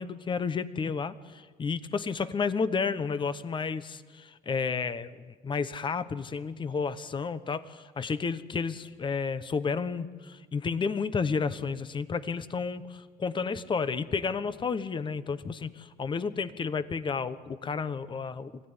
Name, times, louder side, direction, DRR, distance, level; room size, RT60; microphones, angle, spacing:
voice 1, 0.0-18.7, left 5 dB, 30° left, 14 dB, 1.0 m, -31 dB
25.5 x 16.5 x 9.7 m, 1.5 s
cardioid pair, 110°, 17 cm